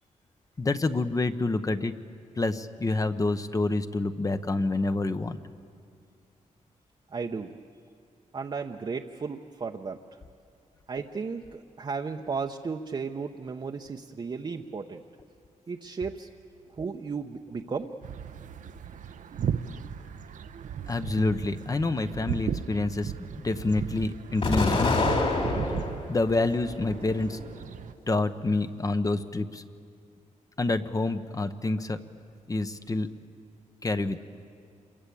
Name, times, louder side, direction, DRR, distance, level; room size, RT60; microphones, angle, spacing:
voice 1, 0.6-1.9 2.4-5.4 20.9-25.0 26.1-27.4 28.1-29.6 30.6-32.0 32.5-33.1 33.8-34.2, left 2 dB, 25° left, 9 dB, 0.9 m, -27 dB
voice 2, 7.1-7.6 8.3-10.0 10.9-15.0 15.7-16.3 16.7-17.9, right 5 dB, 35° right, 3 dB, 0.8 m, -34 dB
sound 1, 18.0-27.9, right 7 dB, 75° right, 0.8 m, -36 dB
Explosion, 24.4-26.1 26.6-27.5, left 3 dB, 50° left, 3.7 m, -26 dB
27.5 x 22.5 x 8.5 m, 2.4 s
wide cardioid pair, 130°, 13 cm